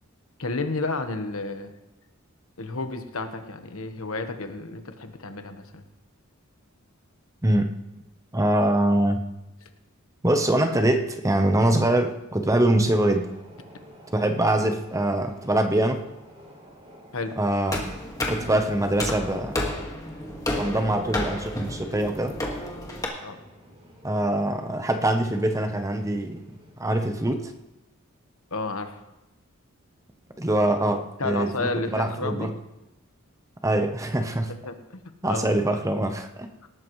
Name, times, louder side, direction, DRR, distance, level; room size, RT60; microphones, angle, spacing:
voice 1, 0.4-1.7 2.6-5.8 17.1-17.3 23.2-23.4 28.5-29.0 31.2-32.5 34.6-35.0 35.2-35.5 36.6-36.7, left 3 dB, 75° left, 7 dB, 1.3 m, -31 dB
voice 2, 8.3-9.2 10.2-13.3 14.1-16.0 17.4-17.8 18.3-19.6 20.6-22.3 24.0-26.4 26.8-27.5 30.4-32.5 33.6-34.5 35.2-36.5, right 1 dB, 15° right, 6 dB, 0.8 m, -23 dB
sound 1, 12.7-27.5, equal, 30° right, 3.5 m, -50 dB
sound 2, 17.7-23.0, left 1 dB, 15° left, 1.8 m, -31 dB
18.5 x 13.0 x 3.2 m, 0.98 s
head